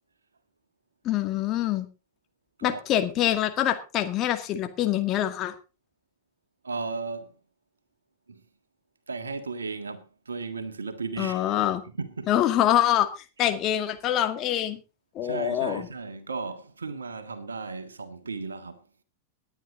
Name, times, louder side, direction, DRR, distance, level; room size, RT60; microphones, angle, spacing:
voice 1, 1.0-1.9 2.6-5.5 11.2-11.8 12.3-13.1 13.4-14.8 15.2-15.9, left 12 dB, 35° left, 2.1 m, -25 dB
voice 2, 6.6-7.3 8.3-8.4 9.1-11.6 11.9-12.3 15.2-18.8, right 4 dB, 75° right, 1.6 m, -35 dB
19.0 x 9.8 x 3.9 m
figure-of-eight pair, 90°, 0 cm